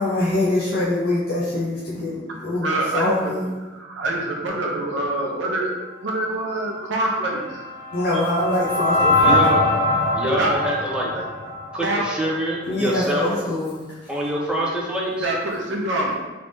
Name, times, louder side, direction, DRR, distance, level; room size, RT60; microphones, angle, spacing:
voice 1, 0.0-3.4 7.9-9.4 12.7-13.8, left 1 dB, 55° left, -7 dB, 0.6 m, -23 dB
voice 2, 2.6-3.4 3.7-5.7 6.0-7.6 10.3-10.8 11.1-11.3 11.8-12.3 15.2-16.1, right 1 dB, 75° right, -1 dB, 0.6 m, -25 dB
sound 1, 7.1-12.3, left 2 dB, 25° left, 1.1 m, -22 dB
voice 3, 9.2-9.6 10.1-11.1 11.7-13.3 14.1-15.3, equal, 5° right, -4 dB, 0.5 m, -25 dB
3.3 x 3.3 x 2.6 m, 1.2 s
head